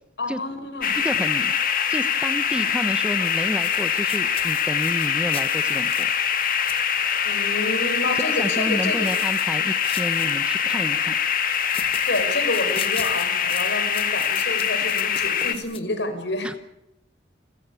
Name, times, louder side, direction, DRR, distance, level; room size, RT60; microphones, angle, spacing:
voice 1, 0.2-1.0 7.2-9.1 12.1-16.5, left 2 dB, 75° left, 7 dB, 5.4 m, -29 dB
sound 1, 0.8-15.5, left 8 dB, 45° left, 2.0 m, -23 dB
voice 2, 1.0-1.5 1.9-6.1 8.1-11.2 16.4-16.5, equal, 5° right, 11 dB, 1.0 m, -30 dB
sound 2, 3.2-8.0 8.8-10.8 11.4-15.8, left 8 dB, 30° left, 1.5 m, -40 dB
30.0 x 16.0 x 8.4 m, 0.84 s
head